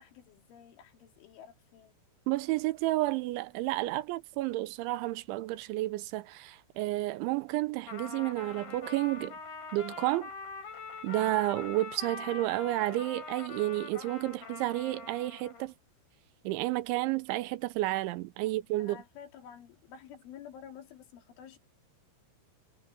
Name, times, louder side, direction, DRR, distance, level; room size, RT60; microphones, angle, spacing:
voice 1, 0.0-1.9 18.4-21.6, left 8 dB, 75° left, 5.7 m, -51 dB
voice 2, 2.3-9.4 9.7-10.3 11.0-15.7 16.4-19.0, right 17 dB, 85° right, 3.1 m, -31 dB
Trumpet, 7.8-15.7, left 4 dB, 50° left, 6.7 m, -44 dB
omnidirectional pair, 5.5 m